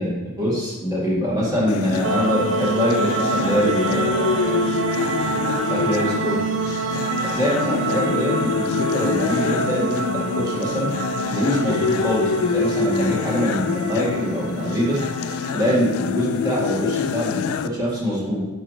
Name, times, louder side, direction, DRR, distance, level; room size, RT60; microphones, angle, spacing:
voice 1, 0.0-6.6 7.2-11.0 11.3-15.0 15.5-18.5, equal, 15° right, -7 dB, 2.1 m, -24 dB
sound 1, 1.7-17.7, left 6 dB, 70° left, 0.3 m, -26 dB
sound 2, 2.0-15.8, right 4 dB, 60° right, 0.4 m, -27 dB
8.4 x 5.2 x 3.3 m, 1.2 s
head